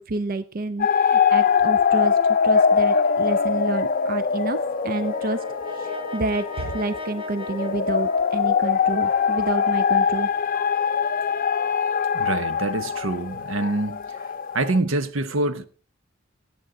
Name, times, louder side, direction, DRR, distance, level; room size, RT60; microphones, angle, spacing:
voice 1, 0.0-2.2 2.4-4.6 4.8-5.4 5.7-10.3, right 2 dB, 45° right, 0.5 m, -29 dB
sound 1, 0.8-14.8, left 6 dB, 45° left, 0.5 m, -22 dB
Brass instrument, 4.5-8.9, left 3 dB, 25° right, 2.3 m, -37 dB
voice 2, 12.1-14.0 14.5-15.7, right 2 dB, 75° right, 0.9 m, -25 dB
18.0 x 8.2 x 3.8 m
head